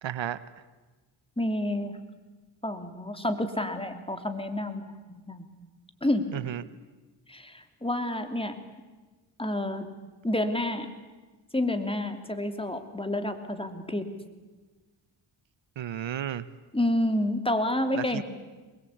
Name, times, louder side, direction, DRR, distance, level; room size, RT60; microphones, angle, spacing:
voice 1, 0.0-0.4 6.3-6.6 15.8-16.5 17.9-18.2, right 10 dB, 65° right, 16 dB, 1.0 m, -32 dB
voice 2, 1.4-2.0 2.6-5.4 6.0-6.3 7.3-8.5 9.4-9.9 10.2-10.9 11.5-14.1 16.7-18.2, left 1 dB, 10° left, 7 dB, 3.0 m, -29 dB
23.0 x 21.0 x 8.6 m, 1.3 s
cardioid pair, 60°, 48 cm